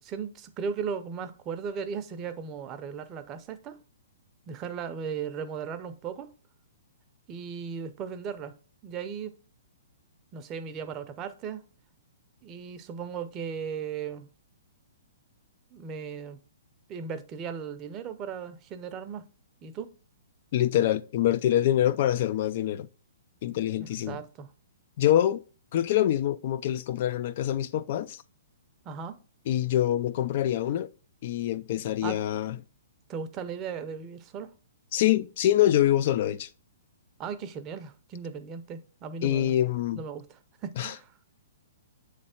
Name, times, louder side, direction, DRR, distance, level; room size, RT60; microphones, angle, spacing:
voice 1, 0.0-3.8 4.5-6.3 7.3-8.5 8.8-9.3 10.3-11.6 12.4-14.3 15.7-16.4 16.9-19.2 19.6-19.9 23.8-24.5 28.8-29.2 32.0-32.2 33.1-34.5 37.2-39.6 39.9-41.1, right 6 dB, 25° right, 0.5 m, -37 dB
voice 2, 20.5-22.9 23.4-24.2 25.0-25.4 25.7-28.2 29.5-30.9 31.2-32.6 34.9-36.5 39.2-40.0 40.8-40.9, left 12 dB, 50° left, 0.3 m, -25 dB
6.9 x 3.2 x 4.2 m
hypercardioid pair, 145°, 0 cm